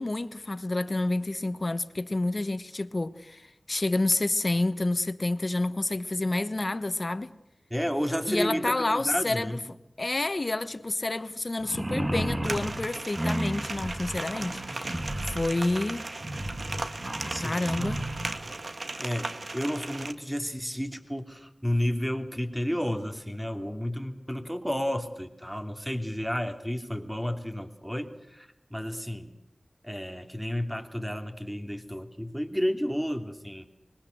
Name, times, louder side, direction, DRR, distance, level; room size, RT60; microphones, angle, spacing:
voice 1, 0.0-7.3 8.3-9.6 10.0-15.0 15.3-16.0 17.4-18.0, left 2 dB, 45° left, 1.3 m, -29 dB
voice 2, 7.7-9.6 17.3-17.6 19.0-29.3 29.8-33.7, equal, 5° right, 2.9 m, -31 dB
sound 1, 11.6-18.4, right 1 dB, 30° right, 1.7 m, -33 dB
sound 2, 12.4-20.1, right 2 dB, 65° right, 1.7 m, -37 dB
25.0 x 22.5 x 7.9 m
wide cardioid pair, 70°, 0 cm